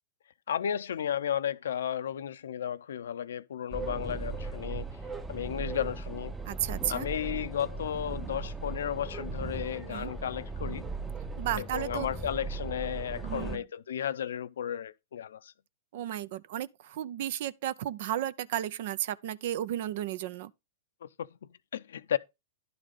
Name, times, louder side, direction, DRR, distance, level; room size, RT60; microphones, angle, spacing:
voice 1, 0.5-4.9 5.3-6.3 6.9-10.8 11.6-15.5 21.0-22.2, left 9 dB, 80° left, 0.5 m, -34 dB
sound 1, 3.7-13.6, right 3 dB, 10° right, 0.8 m, -38 dB
voice 2, 6.5-7.1 9.9-10.1 11.4-12.1 13.2-13.6 15.9-20.5, right 12 dB, 60° right, 0.5 m, -33 dB
11.0 x 4.0 x 4.9 m
hypercardioid pair, 130°, 0 cm